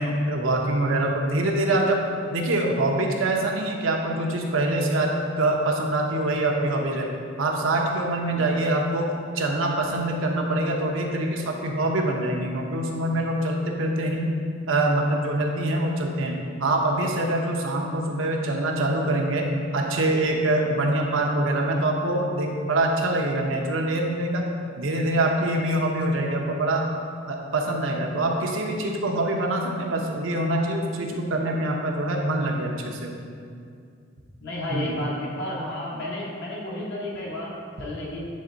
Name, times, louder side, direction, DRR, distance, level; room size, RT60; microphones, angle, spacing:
voice 1, 0.0-2.0 2.3-7.1 7.4-9.1 9.3-14.3 14.7-24.5 24.8-26.9 27.3-33.1 34.7-34.9, right 1 dB, 90° right, 0 dB, 0.7 m, -24 dB
voice 2, 34.4-38.2, left 1 dB, 60° left, -5 dB, 1.4 m, -32 dB
7.6 x 3.4 x 3.9 m, 2.3 s
head